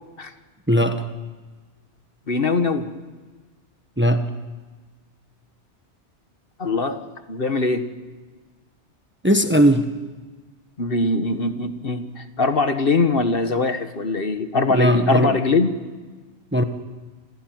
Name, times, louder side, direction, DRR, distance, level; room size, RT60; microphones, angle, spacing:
voice 1, 0.7-1.0 4.0-4.2 9.2-9.9 14.7-15.3 16.5-16.6, equal, 10° right, 7 dB, 1.2 m, -18 dB
voice 2, 2.3-2.9 6.6-7.0 7.3-7.8 10.8-15.7, left 3 dB, 50° left, 8 dB, 1.6 m, -22 dB
28.5 x 16.0 x 9.4 m, 1.4 s
omnidirectional pair, 1.2 m